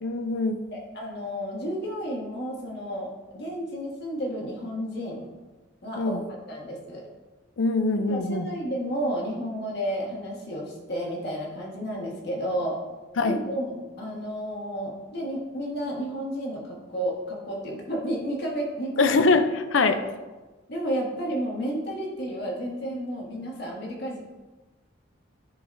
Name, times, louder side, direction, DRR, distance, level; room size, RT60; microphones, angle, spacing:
voice 1, 0.0-0.6 6.0-6.2 7.6-8.5 13.2-13.4 19.0-20.0, left 3 dB, 70° left, 9 dB, 0.5 m, -23 dB
voice 2, 0.7-5.3 5.8-6.2 6.5-7.0 8.1-12.8 13.2-19.1 19.9-20.1 20.7-24.2, equal, 55° left, -2 dB, 1.5 m, -32 dB
10.5 x 4.0 x 2.6 m, 1.2 s
head